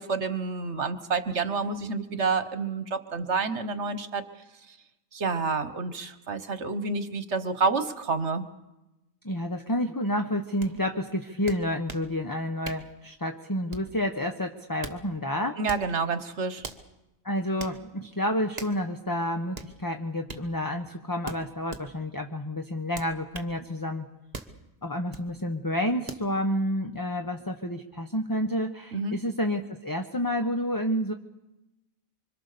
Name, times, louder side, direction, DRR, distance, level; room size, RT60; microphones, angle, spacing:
voice 1, 0.0-4.2 4.7-4.8 5.1-8.5 15.6-16.6 28.9-29.2, right 4 dB, 55° right, 11 dB, 1.7 m, -29 dB
voice 2, 9.2-15.6 17.2-24.1 24.8-31.1, left 1 dB, 15° left, 5 dB, 1.1 m, -29 dB
sound 1, 10.6-10.7 11.5-12.1 12.6-12.9 13.7-14.0 14.6-15.0 15.6-15.9 16.6-16.9 17.6-17.8 18.6-18.8 19.5-19.7 20.3-20.5 21.2-21.9 22.9-23.5 24.3-24.6 25.1-25.3 26.1-26.3, right 3 dB, 30° right, 1.5 m, -40 dB
26.0 x 25.5 x 6.9 m, 0.98 s
omnidirectional pair, 1.4 m